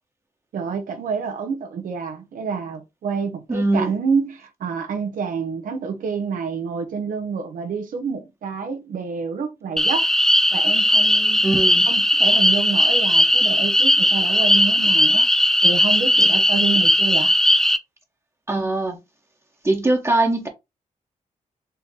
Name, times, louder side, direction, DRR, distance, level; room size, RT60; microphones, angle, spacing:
voice 1, 0.5-10.1 10.5-11.4 11.9-17.3, right 5 dB, 80° right, 0.8 m, -28 dB
voice 2, 3.5-3.9 11.4-11.9 18.5-19.0 19.6-20.5, right 2 dB, 20° right, 0.9 m, -21 dB
sound 1, 9.8-17.8, left 1 dB, 5° left, 0.4 m, -17 dB
4.4 x 2.7 x 3.6 m
cardioid pair, 100°, 14 cm